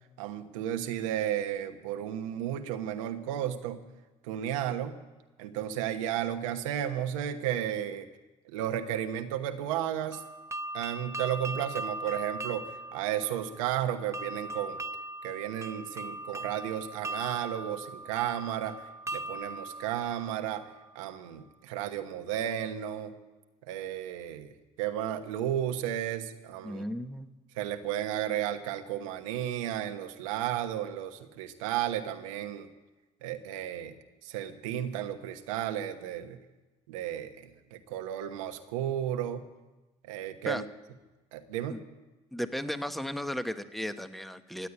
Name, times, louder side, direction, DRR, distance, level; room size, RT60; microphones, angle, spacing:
voice 1, 0.2-3.8 4.2-4.9 5.4-8.1 8.5-10.2 10.7-14.8 15.2-18.8 19.1-20.6 20.9-23.1 23.7-26.8 27.6-32.7 33.2-33.9 34.2-36.4 36.9-39.4 40.0-40.6 41.3-41.8, right 11 dB, 85° right, 7 dB, 1.1 m, -33 dB
sound 1, 10.1-20.9, right 1 dB, 15° right, 0.8 m, -40 dB
voice 2, 26.6-27.4 40.4-40.6 41.7-41.8 42.3-44.7, equal, ahead, 10 dB, 1.1 m, -35 dB
16.0 x 8.4 x 9.6 m, 1.1 s
hypercardioid pair, 65°, 16 cm